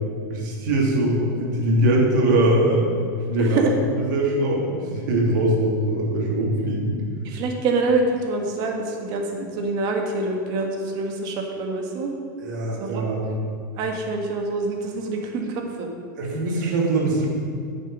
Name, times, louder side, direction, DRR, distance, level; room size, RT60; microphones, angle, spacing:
voice 1, 0.3-2.9 3.3-3.7 4.1-7.0 12.4-13.2 16.2-17.3, right 1 dB, 65° right, -2 dB, 2.9 m, -22 dB
voice 2, 3.4-3.7 7.2-12.1 12.8-13.4 13.8-15.9, right 3 dB, 40° right, 2 dB, 1.7 m, -26 dB
9.4 x 6.7 x 6.2 m, 2.4 s
supercardioid pair, 145°, 11 cm